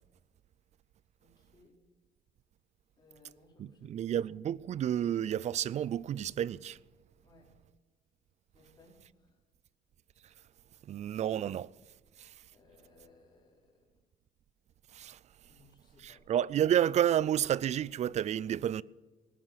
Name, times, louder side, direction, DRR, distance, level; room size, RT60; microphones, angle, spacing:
voice 1, 1.2-1.8 3.0-4.7 7.2-7.6 8.5-9.4 12.5-13.9 15.4-16.3, left 2 dB, 25° left, 4.3 m, -63 dB
voice 2, 3.6-6.8 10.9-11.7 12.2-12.3 14.9-15.2 16.0-18.8, right 10 dB, 45° right, 0.4 m, -30 dB
18.5 x 10.0 x 5.9 m
cardioid pair, 110°, 17 cm